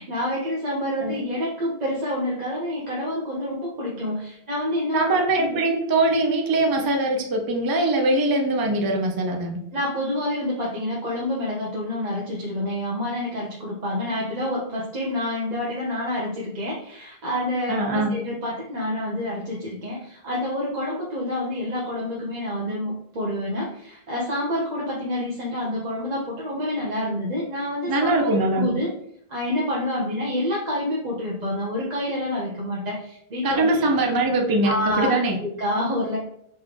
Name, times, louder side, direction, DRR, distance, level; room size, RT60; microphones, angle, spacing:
voice 1, 0.0-5.0 5.4-5.6 9.7-28.9 29.3-33.9 34.6-35.1 35.4-36.2, left 1 dB, 45° right, -4 dB, 0.9 m, -28 dB
voice 2, 4.9-9.6 17.7-18.1 27.9-28.7 33.4-35.4, right 2 dB, 25° right, 2 dB, 0.5 m, -22 dB
4.2 x 3.2 x 3.7 m, 0.71 s
omnidirectional pair, 1.0 m